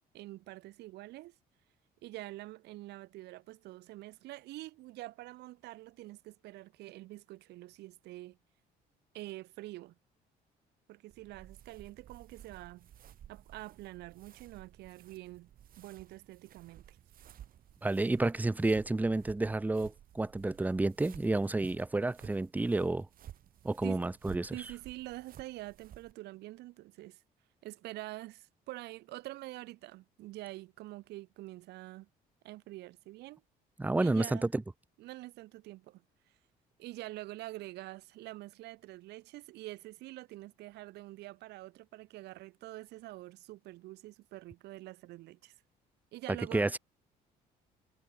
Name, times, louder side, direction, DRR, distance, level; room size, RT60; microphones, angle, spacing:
voice 1, 0.1-1.3 2.0-8.4 9.1-9.9 10.9-12.9 13.3-15.5 15.8-17.0 23.8-24.0 24.5-27.2 27.6-32.1 32.4-33.4 34.0-34.5 35.0-36.0 36.8-45.5 46.1-46.7, right 18 dB, 85° right, 3.6 m, -46 dB
sound 1, 11.1-26.1, right 11 dB, 55° right, 3.9 m, -55 dB
voice 2, 17.8-23.1 23.6-24.5 33.8-34.6 46.5-46.8, right 2 dB, 10° right, 0.7 m, -30 dB
cardioid pair, 110°, 17 cm